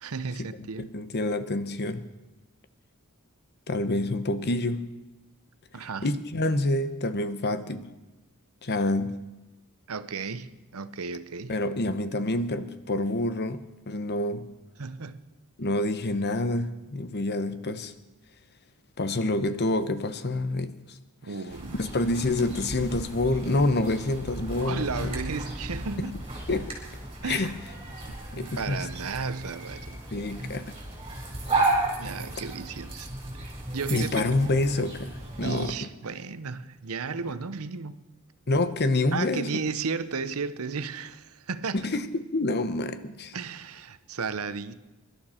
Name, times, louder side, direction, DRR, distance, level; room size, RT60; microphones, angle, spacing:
voice 1, 0.0-0.9 5.7-6.1 9.9-11.6 14.8-15.3 21.2-21.8 24.6-26.1 27.2-27.6 28.1-28.2 28.6-30.0 32.0-33.1 33.4-34.5 35.4-38.1 39.1-41.9 43.3-44.7, right 5 dB, 75° right, 0.8 m, -34 dB
voice 2, 0.8-2.0 3.7-4.9 6.0-7.9 8.6-9.2 11.5-14.5 15.6-17.9 19.0-20.7 21.8-25.1 26.0-26.1 26.5-26.7 27.3-27.5 28.3-28.8 30.1-30.6 33.9-35.1 35.4-35.9 38.5-39.6 41.8-42.1 42.3-43.3, left 2 dB, 50° left, 1.0 m, -27 dB
sound 1, 21.5-35.7, right 2 dB, 25° right, 4.3 m, -34 dB
24.0 x 12.0 x 4.4 m
head